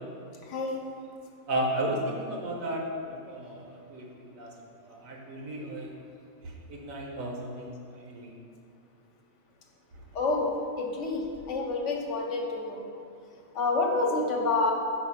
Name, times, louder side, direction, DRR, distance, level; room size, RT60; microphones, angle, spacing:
voice 1, 0.5-0.8 10.1-10.5 10.8-11.2 11.5-12.8 13.5-14.7, left 3 dB, 65° left, 1 dB, 1.0 m, -28 dB
voice 2, 1.5-4.5 4.8-5.9 6.7-8.3, right 1 dB, 75° right, -1 dB, 1.3 m, -34 dB
4.8 x 4.0 x 5.6 m, 2.5 s
omnidirectional pair, 1.4 m